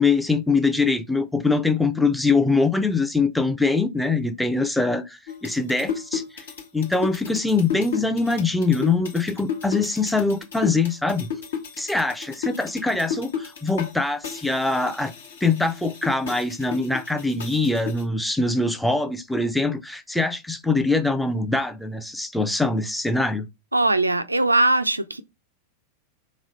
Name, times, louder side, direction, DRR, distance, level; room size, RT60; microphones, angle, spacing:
voice 1, 0.0-6.5 6.7-11.3 11.8-15.1 15.4-23.5, left 3 dB, ahead, 0.5 m, -23 dB
sound 1, 5.3-13.9 14.2-18.0, left 7 dB, 65° left, 0.9 m, -33 dB
voice 2, 23.7-25.2, right 2 dB, 85° right, 0.4 m, -20 dB
3.6 x 3.0 x 4.0 m
figure-of-eight pair, 90°, 0 cm